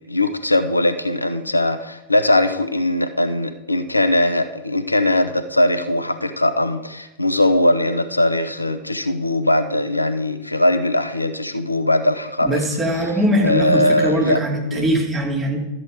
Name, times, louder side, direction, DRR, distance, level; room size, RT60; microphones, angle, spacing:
voice 1, 0.1-12.6 13.4-14.4 14.7-14.8, left 1 dB, 85° left, 9 dB, 0.7 m, -20 dB
voice 2, 12.4-15.6, right 1 dB, 15° right, -1 dB, 3.1 m, -21 dB
13.0 x 7.6 x 5.0 m, 0.95 s
figure-of-eight pair, 90°, 0 cm